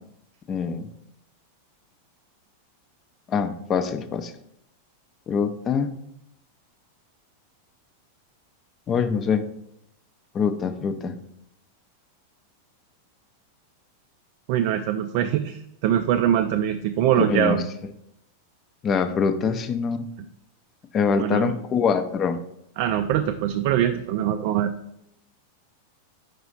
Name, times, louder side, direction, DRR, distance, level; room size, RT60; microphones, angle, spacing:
voice 1, 0.5-0.9 3.3-4.3 5.3-6.0 8.9-9.5 10.3-11.2 17.2-17.6 18.8-20.1 20.9-22.4, left 6 dB, 25° left, 10 dB, 0.5 m, -24 dB
voice 2, 14.5-17.6 21.2-21.5 22.8-24.7, right 11 dB, 45° right, 7 dB, 0.3 m, -23 dB
5.0 x 4.8 x 3.9 m, 0.78 s
figure-of-eight pair, 90°, 0 cm